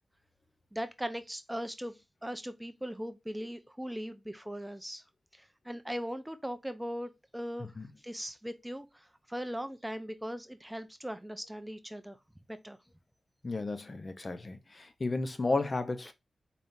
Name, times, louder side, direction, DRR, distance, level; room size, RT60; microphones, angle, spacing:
voice 1, 0.7-5.0 5.3-7.7 8.0-12.2 12.5-12.8, equal, 10° right, 0.4 m, -39 dB
voice 2, 13.4-16.1, left 3 dB, 40° left, 0.7 m, -33 dB
4.2 x 3.6 x 2.6 m
wide cardioid pair, 80°, 0 cm